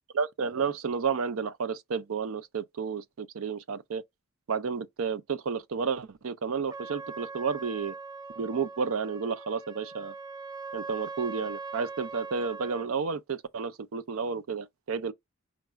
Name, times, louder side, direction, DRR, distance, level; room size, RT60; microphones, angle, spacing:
voice 1, 0.1-4.0 4.5-7.9 8.4-10.1 10.7-15.1, right 5 dB, 75° right, 0.5 m, -31 dB
Trumpet, 6.7-12.9, right 4 dB, 20° right, 0.4 m, -41 dB
5.0 x 2.3 x 4.4 m
head